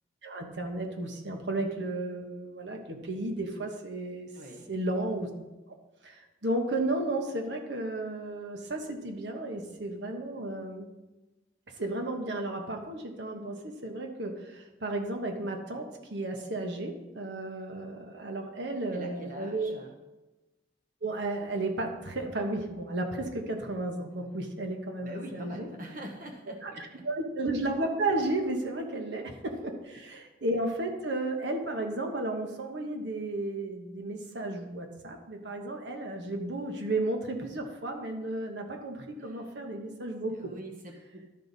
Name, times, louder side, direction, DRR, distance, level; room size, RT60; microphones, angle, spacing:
voice 1, 0.2-4.3 4.7-5.3 5.7-5.8 6.0-10.9 11.8-19.8 21.0-25.7 26.6-40.5, right 2 dB, 85° right, 3 dB, 1.2 m, -33 dB
voice 2, 4.4-4.7 18.9-19.9 25.0-26.8 39.2-39.4 40.3-41.4, right 1 dB, 50° right, 2 dB, 1.0 m, -44 dB
12.5 x 5.7 x 4.1 m, 1.1 s
head